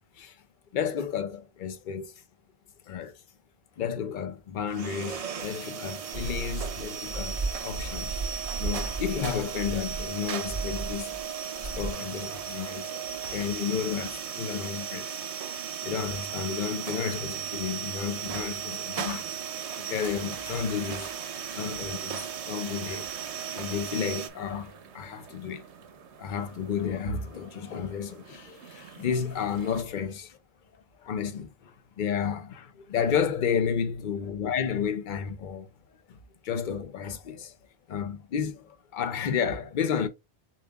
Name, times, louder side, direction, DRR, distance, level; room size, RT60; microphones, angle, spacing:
voice 1, 0.7-2.1 2.9-3.2 3.8-7.4 7.6-11.2 11.8-15.2 15.5-21.1 21.6-23.1 23.5-25.6 26.2-30.4 31.0-35.7 36.1-36.2 36.4-37.5 37.9-40.1, left 7 dB, 55° left, 0.7 m, -32 dB
sound 1, 4.7-24.3, right 8 dB, 55° right, 0.4 m, -36 dB
sound 2, 6.1-11.3 11.6-11.9, right 3 dB, 35° right, 3.2 m, -35 dB
sound 3, 18.7-29.8, right 7 dB, 80° right, 1.0 m, -48 dB
6.9 x 2.4 x 2.3 m
omnidirectional pair, 1.1 m